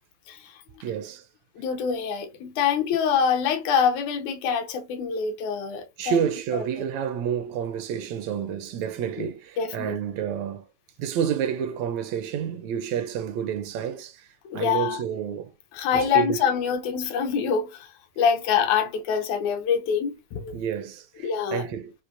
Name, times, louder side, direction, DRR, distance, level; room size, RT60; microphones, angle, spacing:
voice 1, 0.3-0.6 1.6-6.2 6.5-6.6 9.2-9.3 9.6-10.0 14.5-15.0 15.7-20.6 21.2-21.7, left 7 dB, 80° left, 2.2 m, -25 dB
voice 2, 0.8-1.3 6.0-10.7 11.0-14.3 14.5-15.5 15.9-16.4 20.5-21.9, right 8 dB, 80° right, 1.7 m, -29 dB
6.2 x 2.6 x 2.5 m
omnidirectional pair, 3.3 m